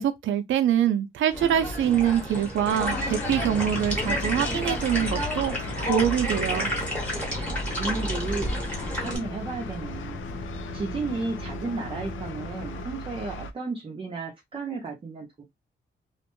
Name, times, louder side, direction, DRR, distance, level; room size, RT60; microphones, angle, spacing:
voice 1, 0.0-6.7, right 10 dB, 80° right, 0.4 m, -25 dB
sound 1, 1.3-9.2, equal, 5° left, 1.0 m, -30 dB
sound 2, 2.6-13.5, left 1 dB, 80° left, 0.4 m, -38 dB
sound 3, 3.1-12.8, left 3 dB, 40° left, 0.7 m, -40 dB
voice 2, 6.9-15.4, right 4 dB, 25° right, 0.5 m, -34 dB
2.5 x 2.1 x 2.9 m
wide cardioid pair, 150°, 20 cm